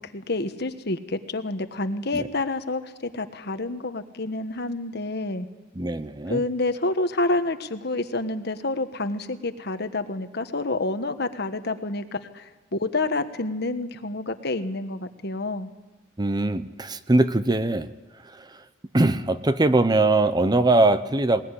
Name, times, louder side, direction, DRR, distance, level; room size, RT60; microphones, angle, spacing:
voice 1, 0.1-5.5 6.3-12.5 12.8-15.7, left 2 dB, 55° left, 9 dB, 1.3 m, -28 dB
voice 2, 5.8-6.4 16.2-17.9 18.9-21.4, right 2 dB, 20° right, 12 dB, 0.7 m, -21 dB
20.5 x 20.0 x 9.9 m, 1.1 s
head